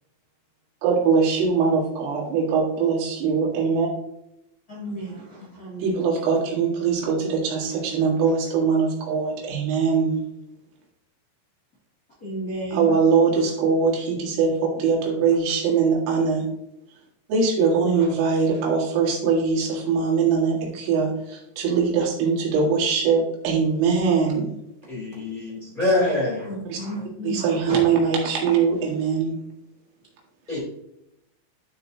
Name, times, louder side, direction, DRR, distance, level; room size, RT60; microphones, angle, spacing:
voice 1, 0.8-3.9 5.8-10.2 12.7-16.4 17.3-24.5 26.7-26.8 27.2-29.4, right 5 dB, 80° right, -2 dB, 4.3 m, -22 dB
voice 2, 4.7-6.0 12.2-12.9 17.9-18.1 18.5-18.6 26.4-27.8, right 1 dB, 75° left, -6 dB, 0.8 m, -33 dB
voice 3, 24.9-26.5 30.5-30.6, left 2 dB, 20° left, -7 dB, 1.4 m, -24 dB
12.0 x 4.5 x 2.7 m, 0.81 s
omnidirectional pair, 5.7 m